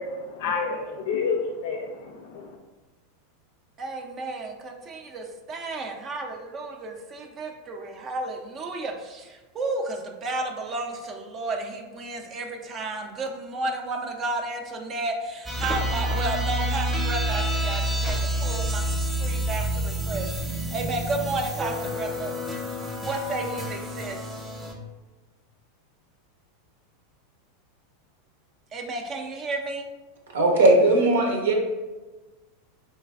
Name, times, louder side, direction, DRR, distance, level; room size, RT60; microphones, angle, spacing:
voice 1, 0.0-2.5, left 4 dB, 65° left, 2 dB, 0.4 m, -29 dB
voice 2, 3.8-22.3 23.0-24.2 28.7-29.9, right 2 dB, 35° right, 3 dB, 0.4 m, -32 dB
sound 1, 15.5-24.7, equal, 15° right, 0.7 m, -28 dB
voice 3, 30.3-31.5, right 2 dB, 85° right, 1 dB, 0.7 m, -18 dB
3.2 x 3.1 x 2.3 m, 1.2 s
hypercardioid pair, 110°, 0 cm